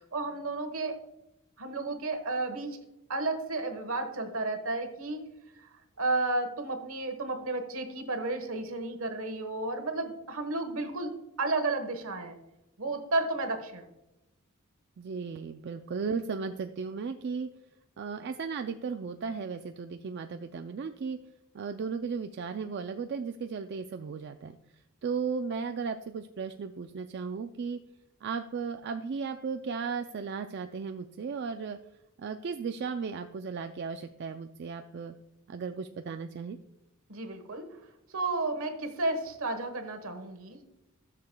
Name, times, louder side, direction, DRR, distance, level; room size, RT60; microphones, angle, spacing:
voice 1, 0.1-1.0 1.6-2.8 3.1-5.3 5.6-5.7 6.0-12.4 12.8-13.9 37.1-37.7 38.1-40.6, right 2 dB, 70° right, 7 dB, 1.2 m, -32 dB
voice 2, 15.0-17.5 18.0-21.2 21.5-24.6 25.0-27.8 28.2-31.8 32.2-35.1 35.5-36.6, right 5 dB, 50° right, 7 dB, 0.3 m, -35 dB
13.5 x 6.7 x 2.2 m, 0.92 s
head